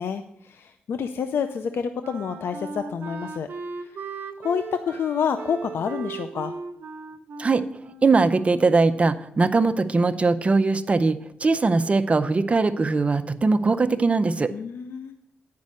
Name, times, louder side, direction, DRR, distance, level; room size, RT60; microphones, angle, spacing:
voice 1, 0.0-3.5 4.4-6.5 14.5-15.1, left 7 dB, 75° left, 9 dB, 0.5 m, -28 dB
Wind instrument woodwind instrument, 1.6-8.8, right 4 dB, 55° right, 1.1 m, -38 dB
voice 2, 8.0-14.5, right 3 dB, 30° right, 9 dB, 0.6 m, -21 dB
9.5 x 5.3 x 6.3 m, 0.76 s
cardioid pair, 75°, 4 cm